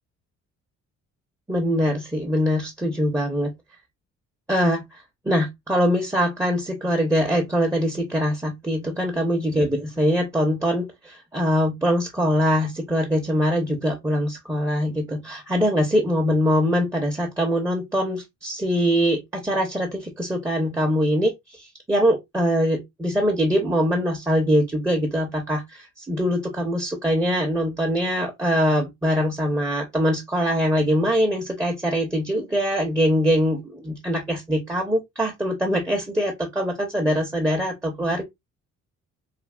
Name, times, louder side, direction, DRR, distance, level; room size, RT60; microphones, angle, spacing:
voice 1, 1.5-3.5 4.5-38.2, equal, 10° right, 0.7 m, -23 dB
3.2 x 2.3 x 2.2 m
cardioid pair, 90°, 30 cm